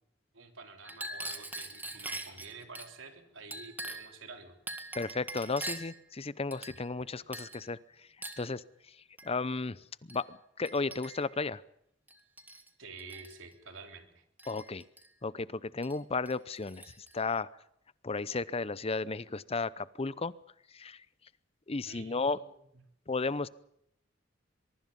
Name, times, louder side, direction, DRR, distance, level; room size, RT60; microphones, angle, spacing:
voice 1, 0.3-4.6 12.8-14.2 21.9-22.8, right 4 dB, 85° right, 5 dB, 3.7 m, -49 dB
Chink clink, 0.8-2.9 3.5-4.2 4.7-6.0 6.5-7.0 7.3-7.6 8.2-8.5 9.2-9.3 10.1-10.2 10.6-11.4 12.1-12.7 13.0-13.4 14.4-15.1 15.8-16.0 16.3-17.1, right 1 dB, 10° right, 1.9 m, -43 dB
voice 2, 4.9-7.8 8.4-8.6 9.2-9.8 10.1-10.2 10.6-11.6 14.5-14.8 15.2-17.5 18.0-20.3 20.7-21.0 21.7-22.4 23.1-23.5, left 3 dB, 30° left, 18 dB, 0.7 m, -34 dB
23.5 x 23.0 x 5.4 m, 0.73 s
head